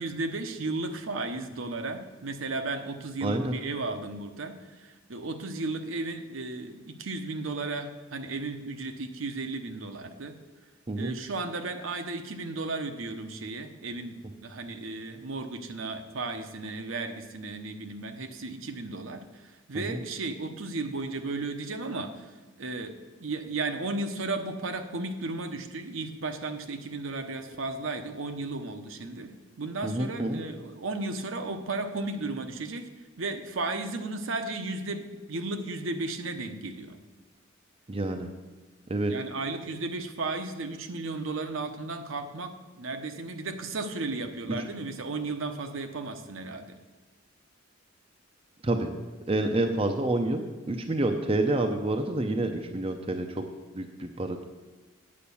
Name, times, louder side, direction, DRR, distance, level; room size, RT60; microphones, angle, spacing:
voice 1, 0.0-10.3 11.0-22.3 22.6-29.3 29.6-32.9 33.2-37.0 39.1-46.8, right 3 dB, 70° right, 6 dB, 0.8 m, -34 dB
voice 2, 3.2-3.5 10.9-11.1 19.7-20.0 29.8-30.4 37.9-38.3 38.9-39.1 48.6-48.9 49.3-53.4 53.7-54.4, right 2 dB, 25° right, 5 dB, 0.5 m, -28 dB
8.6 x 5.1 x 7.0 m, 1.3 s
head